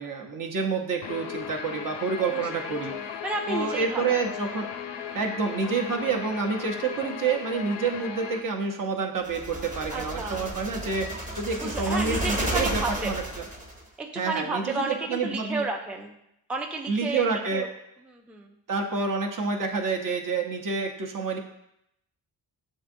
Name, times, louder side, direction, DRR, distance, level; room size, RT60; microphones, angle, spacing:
voice 1, 0.0-3.2 3.5-4.7 5.1-13.4 14.2-15.6 16.9-17.6 18.7-21.4, right 4 dB, 50° right, 2 dB, 0.8 m, -28 dB
Guitar, 1.0-8.4, left 8 dB, 75° left, 0.6 m, -37 dB
voice 2, 2.7-4.2 9.9-10.5 11.6-13.1 14.0-16.1 16.5-17.3 17.5-17.7 18.1-18.6, right 2 dB, 5° right, 2 dB, 0.4 m, -32 dB
sound 1, 9.2-13.8, right 1 dB, 20° right, 0.9 m, -32 dB
7.2 x 2.6 x 2.6 m, 0.81 s
cardioid pair, 65°, 43 cm